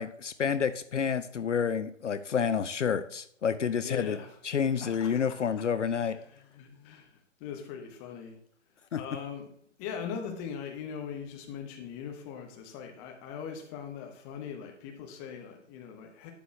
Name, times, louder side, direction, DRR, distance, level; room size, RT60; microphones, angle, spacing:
voice 1, 0.0-4.2 4.4-6.2 8.9-9.0, left 7 dB, 70° left, 13 dB, 0.6 m, -29 dB
voice 2, 3.8-4.4 4.7-5.3 6.1-8.4 8.9-9.5 9.8-16.3, left 7 dB, 15° left, 3 dB, 0.7 m, -41 dB
11.5 x 8.1 x 2.3 m, 0.63 s
figure-of-eight pair, 130°, 38 cm